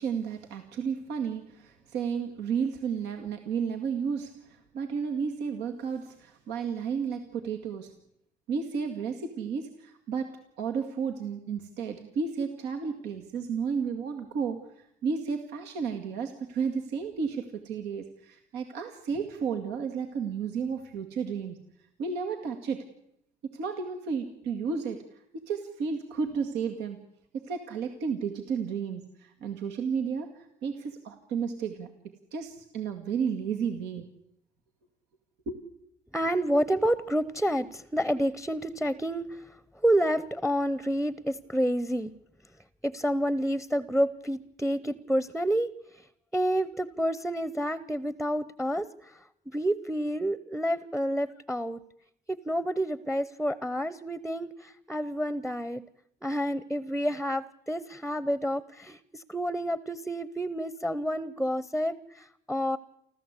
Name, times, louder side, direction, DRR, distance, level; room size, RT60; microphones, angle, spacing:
voice 1, 0.0-7.9 8.5-21.6 22.0-22.8 23.4-27.0 27.3-31.9 32.3-34.1 35.5-35.6, right 6 dB, 90° right, 4 dB, 2.1 m, -32 dB
voice 2, 36.1-42.1 42.8-46.1 46.3-51.8 52.3-55.8 56.2-62.8, equal, ahead, 17 dB, 0.7 m, -29 dB
29.5 x 13.0 x 8.3 m, 0.77 s
cardioid pair, 110°, 17 cm